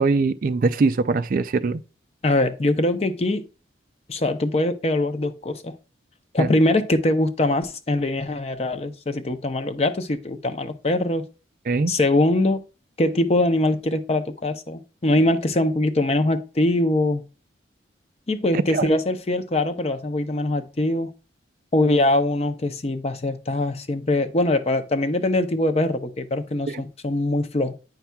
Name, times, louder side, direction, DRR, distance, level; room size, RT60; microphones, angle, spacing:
voice 1, 0.0-1.8 6.4-6.5 11.7-11.9 18.5-18.9 26.7-26.8, right 4 dB, 45° right, 0.3 m, -22 dB
voice 2, 2.2-3.4 4.1-5.7 6.3-11.3 11.9-12.6 13.0-17.2 18.3-21.1 21.7-27.7, left 1 dB, 35° left, 0.5 m, -22 dB
9.2 x 5.6 x 2.2 m
head